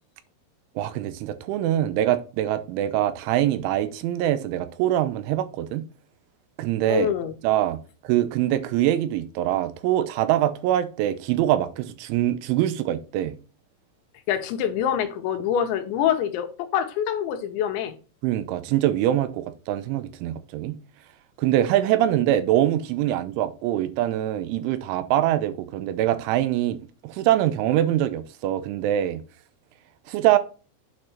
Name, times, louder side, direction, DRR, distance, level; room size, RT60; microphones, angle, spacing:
voice 1, 0.8-5.8 6.6-7.1 7.4-7.8 8.0-13.4 18.2-20.8 21.4-26.8 27.0-29.2 30.1-30.4, right 12 dB, 85° right, 3.0 m, -23 dB
voice 2, 6.9-7.3 14.3-17.9, left 9 dB, 80° left, 2.9 m, -25 dB
8.4 x 4.5 x 4.3 m
omnidirectional pair, 5.7 m